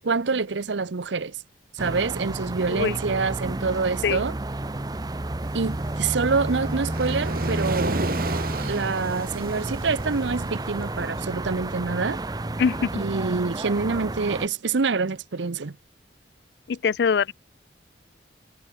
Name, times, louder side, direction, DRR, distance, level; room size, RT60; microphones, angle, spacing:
voice 1, 0.0-1.4 1.7-4.3 5.5-8.0 8.5-12.2 12.9-15.8, right 4 dB, 75° right, 0.7 m, -26 dB
sound 1, 1.8-14.5, right 2 dB, 20° right, 0.6 m, -31 dB
Waves surf, 5.4-12.5, right 2 dB, 50° right, 2.4 m, -34 dB
voice 2, 12.6-12.9 16.7-17.3, left 6 dB, 60° left, 0.4 m, -23 dB
head